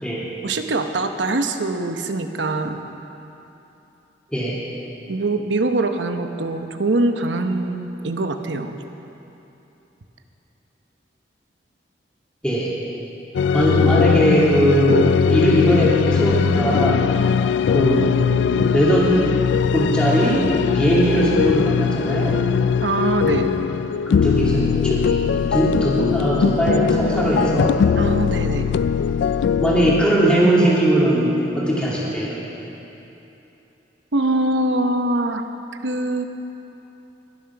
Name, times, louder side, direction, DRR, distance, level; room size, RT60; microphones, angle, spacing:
voice 1, 0.4-2.8 5.1-8.8 22.8-23.5 28.0-28.7 34.1-35.4 35.8-36.2, right 2 dB, 90° right, 7 dB, 0.9 m, -23 dB
sound 1, 13.3-30.0, left 7 dB, 80° left, 0.3 m, -20 dB
voice 2, 13.5-17.0 17.7-19.1 19.7-20.5 20.7-22.4 24.1-25.2 25.5-27.7 29.6-32.4, right 1 dB, 5° left, -7 dB, 2.7 m, -19 dB
21.0 x 7.5 x 5.9 m, 2.9 s
head